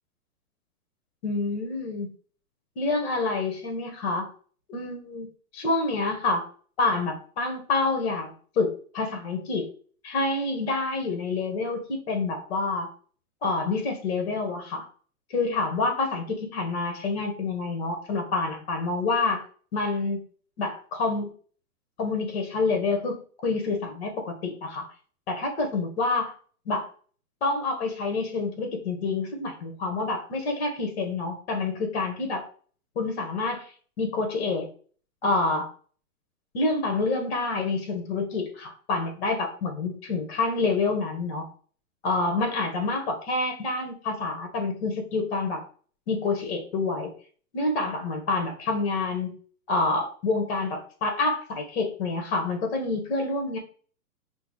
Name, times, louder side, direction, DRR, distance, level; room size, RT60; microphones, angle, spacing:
voice 1, 1.2-2.1 2.8-4.3 4.7-5.3 5.5-6.4 6.8-9.7 10.0-12.9 13.4-14.8 15.3-19.4 19.7-20.2 20.6-21.3 22.0-24.9 25.3-26.3 26.7-26.9 27.4-32.5 32.9-33.6 34.0-34.7 35.2-35.7 36.5-41.5 42.0-45.6 46.1-47.1 47.5-49.4 49.7-53.6, left 3 dB, 45° left, 4 dB, 1.3 m, -27 dB
6.2 x 2.2 x 3.1 m, 0.44 s
hypercardioid pair, 165°, 45 cm